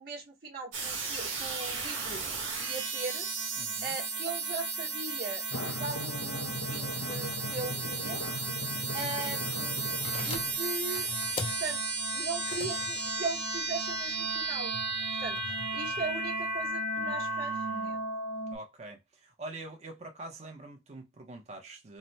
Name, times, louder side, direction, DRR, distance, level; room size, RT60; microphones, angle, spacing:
voice 1, 0.0-3.3 3.8-8.2 8.9-9.8 10.2-11.1 11.6-11.8 12.1-14.7 15.2-15.4 15.7-17.5 17.9-18.0, right 3 dB, 50° right, 1.0 m, -39 dB
sound 1, 0.7-18.6, right 3 dB, 85° right, 1.0 m, -34 dB
voice 2, 3.6-4.0 8.7-9.1 17.0-18.0 18.5-22.0, right 2 dB, 35° right, 0.6 m, -45 dB
Drum, 5.5-10.5, equal, 75° left, 0.7 m, -38 dB
sound 2, 9.9-16.7, left 3 dB, 30° left, 0.4 m, -44 dB
3.1 x 2.1 x 2.6 m
head